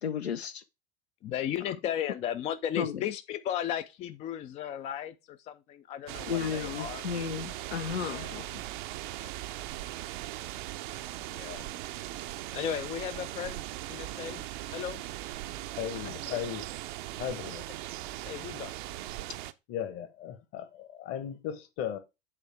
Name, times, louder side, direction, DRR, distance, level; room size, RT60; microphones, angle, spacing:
voice 1, 0.0-0.6 2.8-3.0 6.3-8.6, left 7 dB, 75° left, 0.6 m, -34 dB
voice 2, 1.2-7.0 8.0-8.4 9.2-9.3 11.3-11.7 12.5-14.4 14.7-15.0 16.3-16.4 18.3-18.7, left 10 dB, 20° left, 0.3 m, -35 dB
sound 1, 6.1-19.5, right 15 dB, 50° right, 0.6 m, -39 dB
voice 3, 15.8-16.7 17.2-17.6 19.7-22.0, left 9 dB, 40° left, 1.2 m, -36 dB
8.2 x 3.3 x 4.6 m
figure-of-eight pair, 80°, 32 cm